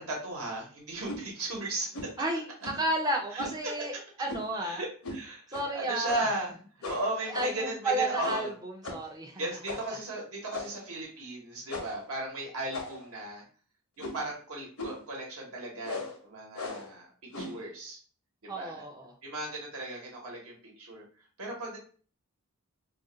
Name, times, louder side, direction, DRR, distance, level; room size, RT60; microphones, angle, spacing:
voice 1, 0.0-2.1 3.3-3.7 4.6-6.5 6.8-8.5 9.4-13.4 14.0-18.0 18.4-18.8 19.2-21.0 21.4-21.8, right 1 dB, 75° right, -2 dB, 1.0 m, -36 dB
sound 1, 1.0-1.2 1.9-2.2 2.6-2.9 3.4-3.6 4.3-4.6 5.0-5.2 5.5-5.7 6.0-6.4 6.8-7.7 8.2-8.5 8.8-9.1 9.6-10.0 10.5-10.9 11.7-12.0 12.7-13.2 14.0-14.3 14.8-15.1 15.8-16.2 16.5-16.9 17.3-17.6, left 2 dB, 75° left, 0.7 m, -39 dB
voice 2, 2.2-3.9 4.2-4.8 5.5-6.2 7.3-9.4 18.5-19.1, right 1 dB, 15° right, 1 dB, 0.4 m, -32 dB
2.4 x 2.2 x 3.8 m, 0.41 s
head